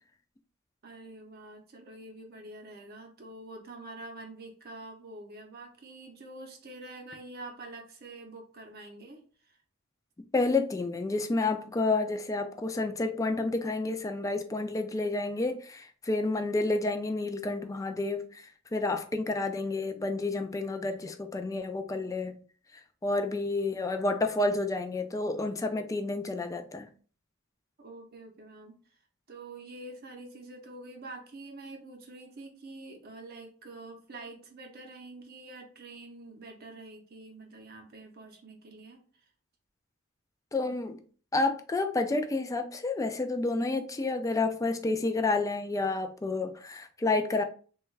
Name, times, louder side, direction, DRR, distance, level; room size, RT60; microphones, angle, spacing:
voice 1, 0.8-9.6 27.8-28.8 29.3-39.0, right 2 dB, 50° right, 0.6 m, -46 dB
voice 2, 10.3-22.4 23.0-26.9 40.5-41.0 41.3-47.4, left 3 dB, 15° left, 0.3 m, -30 dB
3.3 x 2.3 x 3.1 m
head